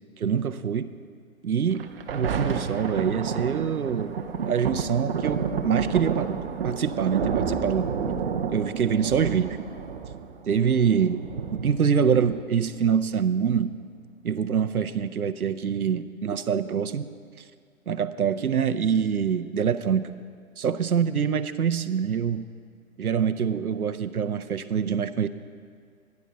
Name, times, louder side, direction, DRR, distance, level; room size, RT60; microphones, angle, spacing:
voice 1, 0.2-0.9 1.4-1.8 2.1-6.4 6.6-7.9 8.5-9.6 10.5-11.2 11.5-13.7 14.2-17.1 17.9-20.1 20.6-22.4 23.0-25.3, right 7 dB, 90° right, 9 dB, 0.6 m, -25 dB
Thunder, 1.7-12.7 13.4-13.5, right 6 dB, 40° right, 0.7 m, -30 dB
12.5 x 10.5 x 3.8 m, 2.1 s
figure-of-eight pair, 130°, 42 cm